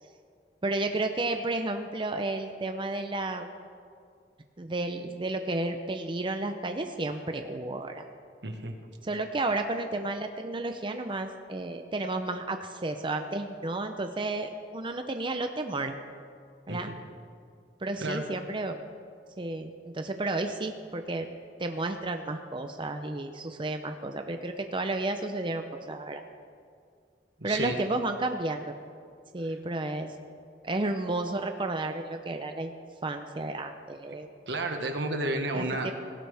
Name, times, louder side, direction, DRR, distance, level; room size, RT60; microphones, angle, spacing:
voice 1, 0.6-3.5 4.6-8.0 9.0-15.9 16.7-16.9 17.8-18.8 19.4-21.3 21.6-26.2 27.4-28.7 29.3-30.1 30.6-32.8 33.0-34.3 35.5-35.9, right 2 dB, 30° right, 6 dB, 0.6 m, -32 dB
voice 2, 8.4-8.7 16.7-17.0 18.0-18.2 27.4-27.8 34.5-35.9, right 2 dB, 80° right, 4 dB, 1.5 m, -31 dB
18.5 x 16.5 x 3.5 m, 2.2 s
head